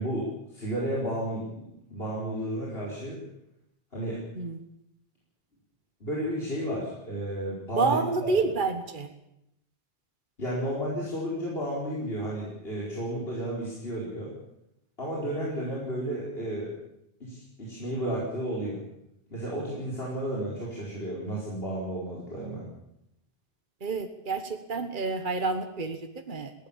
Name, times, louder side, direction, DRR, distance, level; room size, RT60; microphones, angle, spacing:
voice 1, 0.0-1.7 1.9-3.2 3.9-4.2 6.0-8.3 10.4-14.3 15.0-16.7 17.2-18.8 19.3-22.6, right 1 dB, 70° left, -5 dB, 5.4 m, -32 dB
voice 2, 7.7-9.1 23.8-26.5, right 4 dB, 55° right, 7 dB, 1.6 m, -29 dB
21.0 x 17.5 x 7.4 m, 0.81 s
omnidirectional pair, 1.0 m